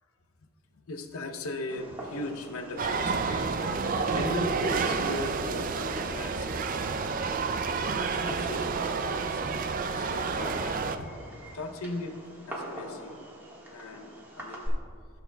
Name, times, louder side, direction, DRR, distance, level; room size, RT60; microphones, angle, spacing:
voice 1, 0.4-6.8 7.9-9.4 9.7-11.2 11.5-12.2 12.5-13.2 13.7-14.8, left 2 dB, 80° left, 5 dB, 0.7 m, -39 dB
Fireworks, 1.7-14.7, equal, 10° right, 1.4 m, -44 dB
sound 1, 2.8-11.0, right 4 dB, 40° right, 0.4 m, -30 dB
15.0 x 6.9 x 2.3 m, 2.3 s
head